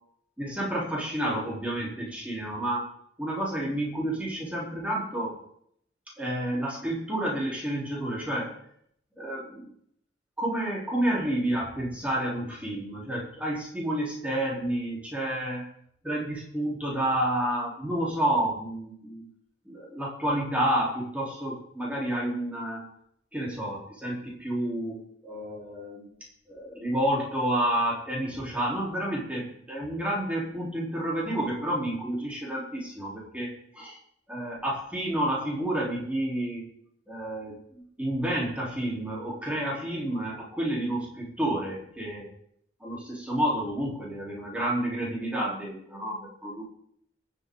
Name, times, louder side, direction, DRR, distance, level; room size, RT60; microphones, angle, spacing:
voice 1, 0.4-2.9 3.2-5.4 6.2-8.6 9.2-9.7 10.4-15.6 16.0-19.3 19.6-22.9 23.3-26.1 26.5-34.0 34.3-36.7 37.1-42.3 42.8-46.6, right 1 dB, 5° right, -4 dB, 3.7 m, -30 dB
23.0 x 8.2 x 3.9 m, 0.68 s
head